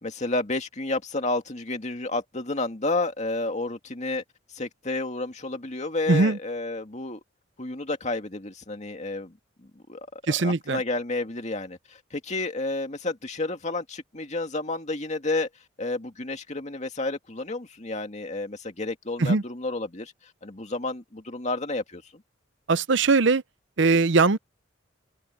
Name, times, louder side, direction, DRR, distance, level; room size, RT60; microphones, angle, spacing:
voice 1, 0.0-4.2 4.5-7.2 7.6-9.3 9.9-15.5 15.8-20.1 20.4-22.0, left 2 dB, 35° left, 2.2 m, -31 dB
voice 2, 6.1-6.4 10.3-10.8 19.2-19.4 22.7-23.4 23.8-24.4, right 3 dB, 70° right, 0.7 m, -20 dB
open air
head